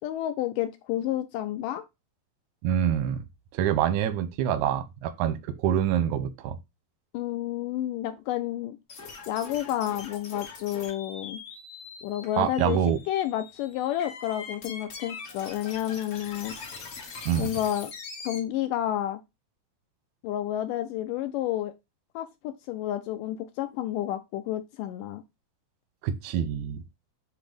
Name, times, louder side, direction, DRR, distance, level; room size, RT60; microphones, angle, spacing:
voice 1, 0.0-1.8 7.1-8.8 9.3-11.4 12.0-12.8 13.1-16.5 17.4-17.9 18.3-19.2 20.2-21.7 22.2-25.2, left 12 dB, 80° left, 2.0 m, -30 dB
voice 2, 2.6-3.2 3.5-6.6 12.4-13.0 17.3-17.5 26.0-26.8, right 9 dB, 75° right, 1.8 m, -26 dB
sound 1, 8.9-18.4, left 4 dB, 45° left, 2.5 m, -42 dB
8.0 x 2.9 x 5.0 m
omnidirectional pair, 4.2 m